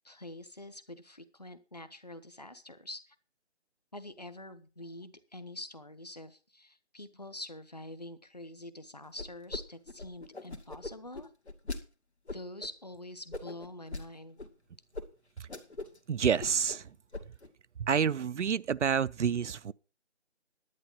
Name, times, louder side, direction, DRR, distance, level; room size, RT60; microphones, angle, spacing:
voice 1, 0.0-3.2 3.9-11.3 12.3-14.4, left 1 dB, 35° left, 0.9 m, -46 dB
sound 1, 9.2-9.6 9.9-11.8 12.3-12.7 13.3-14.0 14.4-14.5 14.9-15.0 15.4-16.0 16.2-16.8 17.1-17.5, left 2 dB, 70° left, 2.0 m, -40 dB
voice 2, 16.1-16.8 17.8-19.7, right 7 dB, 80° right, 0.5 m, -28 dB
11.0 x 9.4 x 5.5 m
figure-of-eight pair, 180°, 35 cm